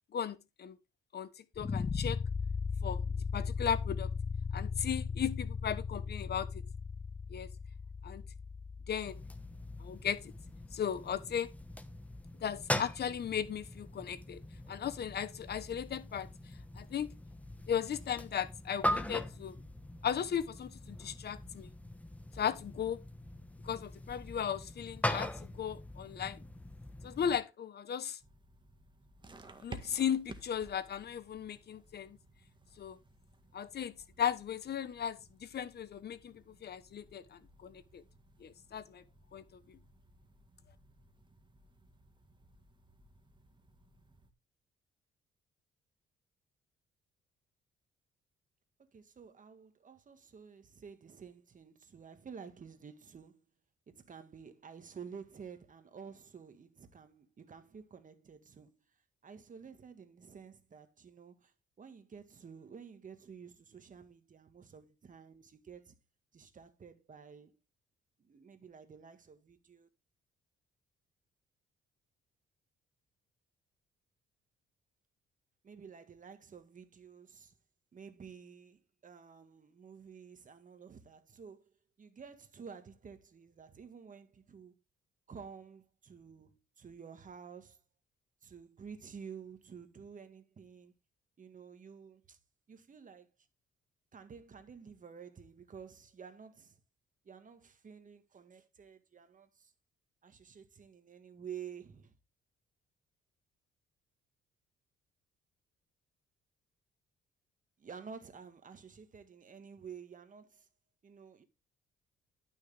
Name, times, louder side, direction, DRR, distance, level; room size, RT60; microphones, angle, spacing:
voice 1, 0.1-0.8 1.1-2.2 2.8-3.0 3.3-4.1 4.5-6.6 7.3-7.5 8.0-8.2 8.9-9.2 9.8-10.3 10.7-11.5 12.4-14.4 14.7-16.3 16.7-17.1 17.7-19.6 20.0-21.7 22.4-23.0 23.6-26.4 27.0-28.2 29.6-32.2 32.8-33.0 33.5-38.0 38.4-39.0 39.3-39.8, left 8 dB, 55° left, 1.2 m, -36 dB
sound 1, 1.5-10.6, left 5 dB, 25° left, 0.5 m, -38 dB
sound 2, 9.0-27.4, left 1 dB, 5° left, 1.3 m, -41 dB
sound 3, 28.2-44.3, right 2 dB, 25° right, 1.7 m, -56 dB
voice 2, 48.8-53.6 53.9-58.8 59.2-66.0 66.3-67.6 68.2-69.9 75.6-77.5 77.9-84.8 85.3-87.8 88.4-90.9 91.4-92.4 92.7-93.3 94.1-96.8 97.3-99.7 100.2-102.1 107.8-110.7 111.0-111.4, right 6 dB, 40° right, 1.8 m, -51 dB
12.0 x 6.4 x 3.5 m
cardioid pair, 90°, 20 cm